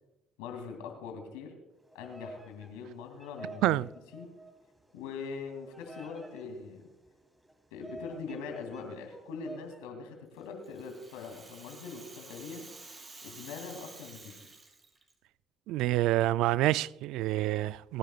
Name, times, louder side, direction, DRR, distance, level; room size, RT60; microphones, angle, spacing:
voice 1, 0.4-1.5 1.9-3.8 4.1-4.3 4.9-6.9 7.7-12.7 13.2-14.4, left 5 dB, 85° left, 2.6 m, -42 dB
Bird vocalization bird call bird song, 1.8-9.8, right 1 dB, 15° right, 3.5 m, -50 dB
Rattle (instrument), 10.4-15.1, right 3 dB, 35° right, 5.5 m, -50 dB
voice 2, 15.7-18.0, right 16 dB, 75° right, 0.3 m, -27 dB
29.0 x 10.5 x 2.3 m
hypercardioid pair, 60°, 0 cm